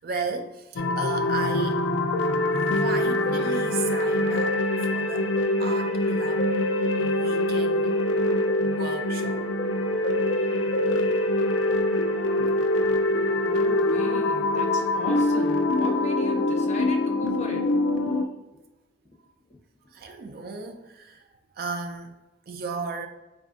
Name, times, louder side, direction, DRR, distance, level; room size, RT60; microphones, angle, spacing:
voice 1, 0.0-1.9 2.8-5.3 5.6-6.6 7.0-7.9 8.6-9.5 19.9-21.3 21.6-22.1 22.5-23.1, right 4 dB, 50° right, 0.4 m, -35 dB
sound 1, 0.8-18.2, left 1 dB, 80° left, 0.5 m, -24 dB
sound 2, 8.8-17.2, left 4 dB, 10° right, 0.7 m, -41 dB
voice 2, 13.4-17.6, left 2 dB, 35° left, 0.7 m, -38 dB
4.0 x 2.6 x 3.6 m
head